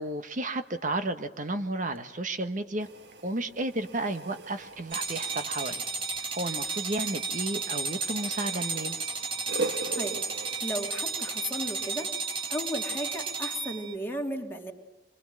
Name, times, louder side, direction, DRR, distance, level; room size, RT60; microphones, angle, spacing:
voice 1, 0.0-2.9 3.2-5.9 6.2-9.0, right 2 dB, 45° right, 9 dB, 1.2 m, -32 dB
sound 1, 2.8-11.9, right 3 dB, 65° right, 1.3 m, -41 dB
sound 2, 4.9-13.9, right 4 dB, 30° right, 2.2 m, -33 dB
voice 2, 9.6-10.2 10.6-12.1 12.5-14.7, equal, 15° left, 0 dB, 2.9 m, -35 dB
26.0 x 23.5 x 7.6 m, 1.1 s
head